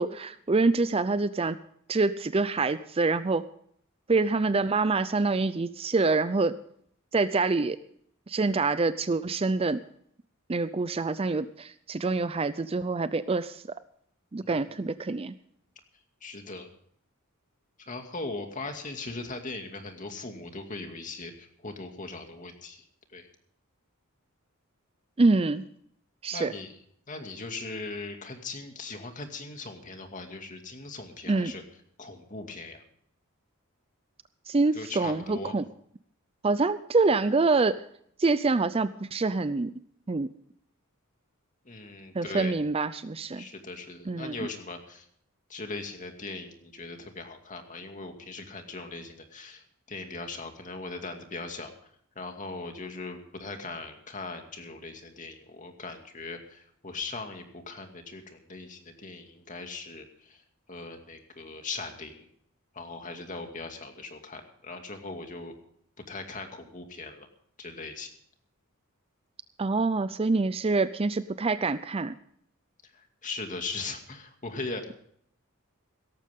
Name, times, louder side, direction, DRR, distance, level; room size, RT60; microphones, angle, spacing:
voice 1, 0.0-1.6 1.9-3.4 4.1-6.5 7.1-7.8 8.3-9.8 10.5-13.6 14.3-15.3 25.2-25.6 26.2-26.5 31.3-31.5 34.5-35.6 36.4-37.8 38.2-39.7 40.1-40.3 42.1-43.5 44.1-44.3 69.6-72.1, right 3 dB, 25° right, 14 dB, 0.5 m, -26 dB
voice 2, 14.4-14.8 16.2-16.7 17.8-22.8 23.1-23.3 26.3-26.7 27.1-31.6 32.0-32.8 34.7-35.6 41.6-42.5 43.3-45.1 45.5-51.7 52.2-60.4 60.7-62.3 62.7-65.6 66.1-67.3 67.6-68.1 72.9-74.9, left 3 dB, 35° left, 4 dB, 2.3 m, -39 dB
17.5 x 14.0 x 3.6 m, 0.65 s
head